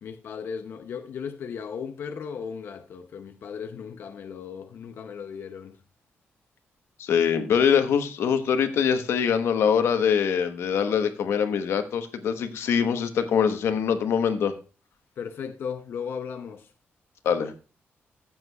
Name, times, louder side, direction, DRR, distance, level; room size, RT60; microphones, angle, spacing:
voice 1, 0.0-5.8 15.2-16.7, left 6 dB, 60° left, 0.6 m, -36 dB
voice 2, 7.0-14.5 17.2-17.5, left 7 dB, 90° left, 1.0 m, -23 dB
14.5 x 8.0 x 2.3 m
wide cardioid pair, 165°, 4 cm